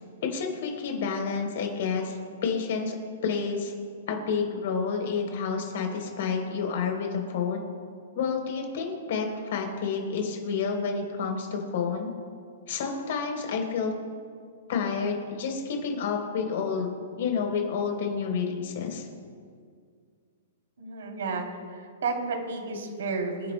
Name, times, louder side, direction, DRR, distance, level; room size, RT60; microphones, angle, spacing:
voice 1, 0.2-3.0 3.2-3.7 4.1-7.6 8.1-12.1 12.7-13.9 14.7-19.1, left 5 dB, 55° left, 2 dB, 3.5 m, -29 dB
voice 2, 20.8-23.5, right 4 dB, 85° right, 1 dB, 2.9 m, -32 dB
28.5 x 11.5 x 2.2 m, 2.1 s
hypercardioid pair, 170°, 0 cm